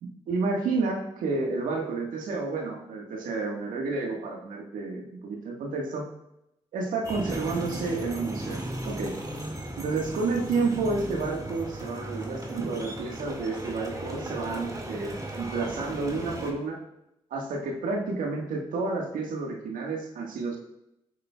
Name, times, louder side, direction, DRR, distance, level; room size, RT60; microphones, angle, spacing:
voice 1, 0.0-6.1 6.7-9.1 9.8-16.8 17.3-20.6, right 3 dB, 75° right, 0 dB, 1.6 m, -30 dB
sound 1, 7.0-16.5, right 1 dB, 25° right, 2.1 m, -36 dB
13.5 x 6.6 x 2.4 m, 0.84 s
supercardioid pair, 45°, 14 cm